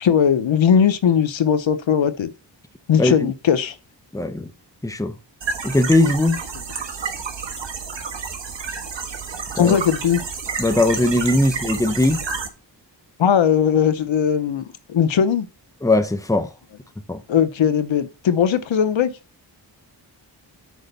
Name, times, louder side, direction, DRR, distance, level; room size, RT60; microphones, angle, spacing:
voice 1, 0.0-2.3 2.9-3.7 9.6-10.2 13.2-14.6 14.9-15.5 17.3-19.1, left 8 dB, 85° left, 0.9 m, -18 dB
voice 2, 3.0-3.3 4.1-4.5 4.8-5.2 5.6-6.4 9.5-9.8 10.6-12.2 15.8-16.5 17.1-17.2, left 2 dB, 5° left, 0.9 m, -19 dB
sound 1, 5.4-12.5, right 5 dB, 75° right, 1.5 m, -30 dB
6.4 x 4.9 x 6.6 m
wide cardioid pair, 95°, 45 cm